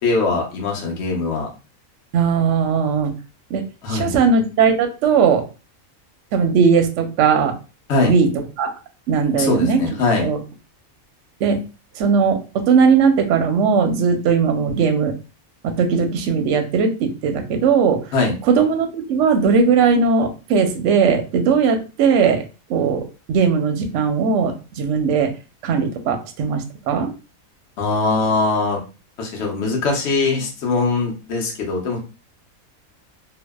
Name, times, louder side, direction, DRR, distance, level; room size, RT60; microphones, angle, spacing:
voice 1, 0.0-1.5 3.8-4.1 7.9-8.1 9.4-10.3 18.1-18.3 27.8-28.8 29.2-32.0, left 3 dB, 55° left, -1 dB, 0.9 m, -21 dB
voice 2, 2.1-3.1 3.5-3.6 3.9-5.4 6.3-7.5 8.0-8.3 8.6-8.7 9.1-9.8 10.2-10.4 11.4-11.6 12.0-15.1 15.6-18.0 18.5-22.4 22.7-25.3 25.6-27.1, right 6 dB, 70° right, 5 dB, 0.8 m, -18 dB
2.6 x 2.1 x 2.2 m, 0.32 s
omnidirectional pair, 1.5 m